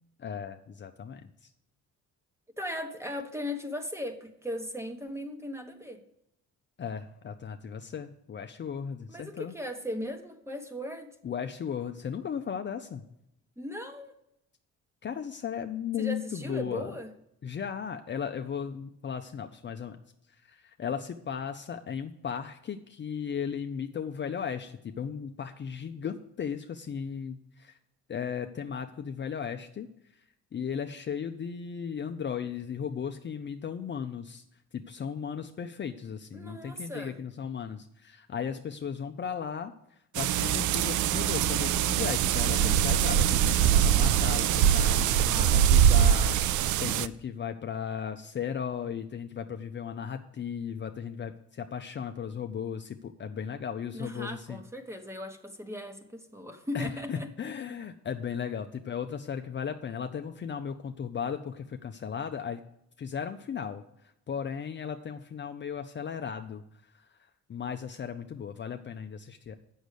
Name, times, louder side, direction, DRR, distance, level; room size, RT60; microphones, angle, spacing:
voice 1, 0.2-1.5 6.8-9.6 11.2-13.0 15.0-16.9 17.4-20.0 20.4-27.8 28.1-29.9 30.5-34.4 34.7-39.7 40.1-54.6 56.7-62.6 63.0-63.8 64.3-66.6 66.9-67.1 67.5-69.6, left 7 dB, 40° left, 6 dB, 0.6 m, -36 dB
voice 2, 2.6-6.0 9.1-11.1 13.6-14.1 16.0-17.1 36.3-37.2 45.3-45.6 53.9-57.3, left 1 dB, 10° right, 6 dB, 1.2 m, -38 dB
sound 1, 40.1-47.1, right 10 dB, 80° right, 0.5 m, -23 dB
7.8 x 6.3 x 6.6 m, 0.79 s
cardioid pair, 90°, 30 cm